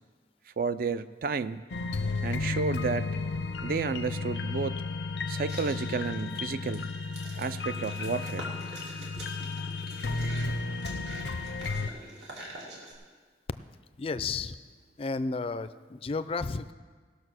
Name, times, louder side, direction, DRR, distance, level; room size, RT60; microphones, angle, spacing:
voice 1, 0.6-1.6 2.2-3.1 3.6-4.8 5.3-6.9 7.4-8.5, right 4 dB, 55° right, 13 dB, 0.4 m, -31 dB
sound 1, 1.7-11.9, left 3 dB, 85° left, 0.6 m, -33 dB
sound 2, 5.5-12.9, right 1 dB, 75° right, 2.7 m, -45 dB
voice 2, 14.0-14.6 15.0-16.7, left 4 dB, 30° left, 13 dB, 0.3 m, -32 dB
17.5 x 6.3 x 6.3 m, 1.5 s
head